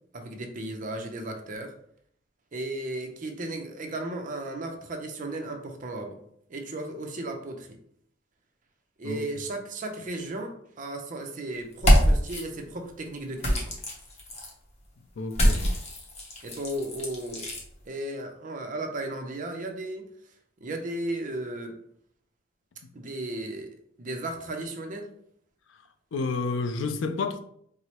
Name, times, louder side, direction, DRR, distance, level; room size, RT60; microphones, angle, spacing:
voice 1, 0.1-1.7 2.5-6.2 6.5-7.8 9.0-13.7 16.4-17.5 17.9-20.0 20.6-21.8 22.9-25.1, right 1 dB, 40° right, 0.5 m, -35 dB
sound 1, 11.7-12.4 13.4-14.5 15.3-17.6, equal, 35° left, 0.8 m, -24 dB
voice 2, 15.2-15.7 25.7-25.8 26.1-27.4, left 4 dB, 65° left, 0.4 m, -30 dB
4.6 x 2.0 x 2.8 m
head